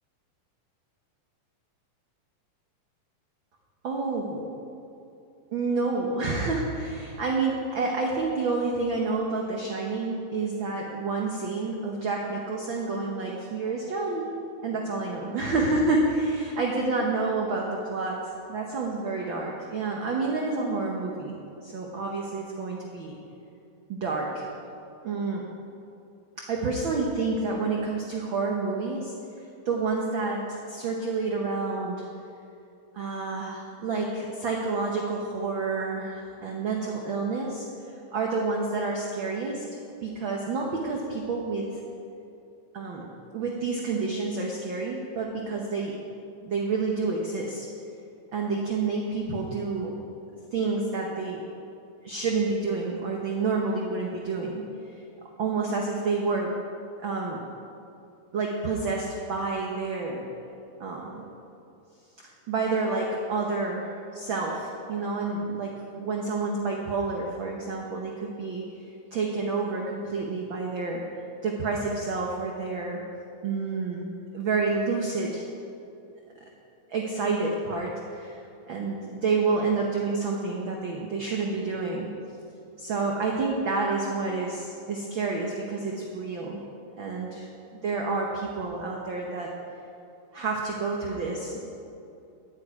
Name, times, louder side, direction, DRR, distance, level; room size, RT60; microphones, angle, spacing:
voice 1, 3.8-4.5 5.5-14.4 14.6-18.2 18.4-23.2 23.9-24.4 25.0-25.4 26.5-29.1 29.6-32.0 32.9-37.7 38.1-39.6 40.0-41.7 42.7-43.1 43.3-45.9 46.4-47.7 48.3-50.0 50.5-51.4 52.0-54.6 55.4-56.5 57.0-57.4 58.3-60.2 60.8-61.2 62.5-68.6 69.1-71.0 71.4-73.0 73.4-74.1 74.3-75.4 76.9-78.4 78.7-82.1 82.8-86.6 87.0-87.5 87.8-89.5 90.3-91.6, right 3 dB, 60° right, -1 dB, 1.3 m, -29 dB
14.5 x 10.5 x 4.8 m, 2.7 s
omnidirectional pair, 3.5 m